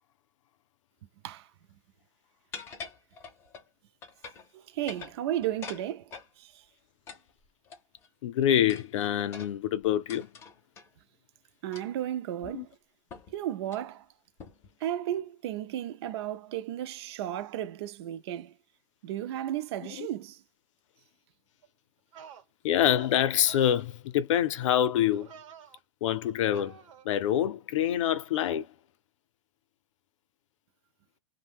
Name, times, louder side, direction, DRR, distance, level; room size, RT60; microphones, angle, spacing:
sound 1, 2.5-3.7 4.0-4.5 4.8-6.3 7.1-8.1 8.7-10.9 11.7-12.0 12.4-12.5 13.1-13.4 13.6-13.9 14.4-14.7, left 5 dB, 15° left, 0.5 m, -45 dB
voice 1, 4.5-6.0 6.4-6.6 11.6-12.7 13.3-14.1 14.8-18.5 19.0-20.4, right 12 dB, 50° right, 0.4 m, -34 dB
voice 2, 8.2-10.3 12.5-12.7 20.0-20.1 22.6-25.3 26.0-26.8 27.0-28.7, left 10 dB, 70° left, 0.6 m, -26 dB
sound 2, 21.6-21.7 22.1-22.4 22.8-23.2 23.4-23.8 24.5-24.9 25.1-25.8 26.5-27.1, right 8 dB, 70° right, 0.9 m, -49 dB
2.6 x 2.1 x 3.4 m
supercardioid pair, 170°, 17 cm